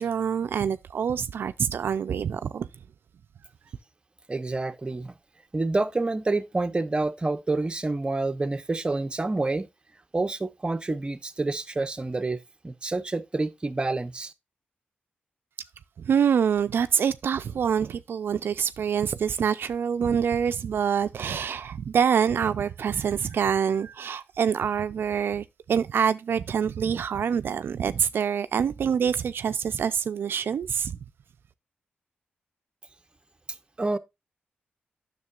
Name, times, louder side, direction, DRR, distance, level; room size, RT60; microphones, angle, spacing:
voice 1, 0.0-2.7 16.0-31.0, right 7 dB, 70° right, 0.3 m, -26 dB
voice 2, 4.3-5.2 5.5-9.7 10.1-12.4 12.6-14.3 33.8-34.0, right 2 dB, 25° right, 0.6 m, -28 dB
9.5 x 6.6 x 2.3 m
cardioid pair, 80°, 4 cm